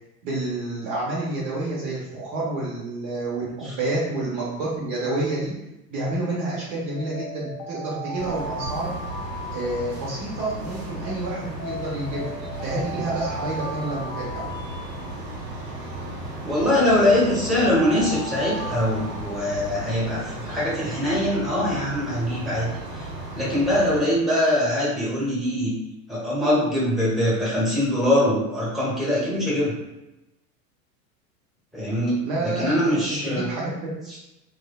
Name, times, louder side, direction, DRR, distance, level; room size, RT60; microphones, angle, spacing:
voice 1, 0.2-5.5 5.9-8.9 9.5-12.3 12.6-14.4 32.2-33.9, right 2 dB, 45° right, -5 dB, 0.8 m, -29 dB
Alarm, 6.9-11.1 11.6-16.1 16.6-20.4, equal, 35° left, 0.6 m, -37 dB
sound 1, 8.2-24.0, right 1 dB, 80° right, 0.9 m, -35 dB
voice 2, 16.4-22.7 23.0-23.1 23.3-25.8 26.1-29.7 31.7-33.5, left 1 dB, ahead, -8 dB, 1.1 m, -23 dB
3.1 x 2.2 x 2.2 m, 0.92 s
hypercardioid pair, 90°, 49 cm